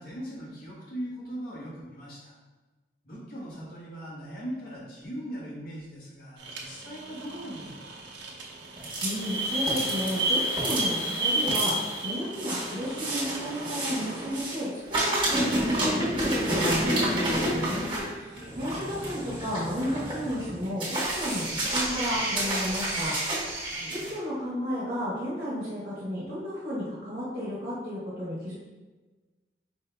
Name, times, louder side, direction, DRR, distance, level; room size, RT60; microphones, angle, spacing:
voice 1, 0.0-2.4 3.0-8.0 18.4-18.7 23.7-24.1, equal, 55° left, -6 dB, 1.3 m, -40 dB
sound 1, 6.4-14.4, right 3 dB, 85° right, 0.7 m, -45 dB
voice 2, 8.6-23.6 23.9-28.5, equal, 45° right, -9 dB, 1.1 m, -33 dB
sound 2, 8.8-14.6 14.9-24.1, right 1 dB, 25° right, 1.3 m, -29 dB
4.9 x 2.7 x 3.3 m, 1.2 s
head